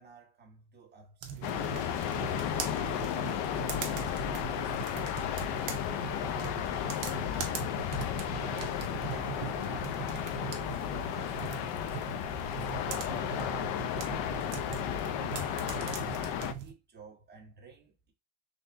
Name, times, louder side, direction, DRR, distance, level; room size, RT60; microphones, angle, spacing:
voice 1, 0.0-2.0 2.5-6.3 6.5-7.5 8.4-13.3 13.9-18.1, right 5 dB, 25° right, 1.4 m, -54 dB
sound 1, 1.2-16.7, right 8 dB, 45° right, 0.8 m, -41 dB
sound 2, 1.4-16.5, left 10 dB, 75° left, 0.7 m, -34 dB
4.1 x 3.4 x 2.6 m
cardioid pair, 150°, 41 cm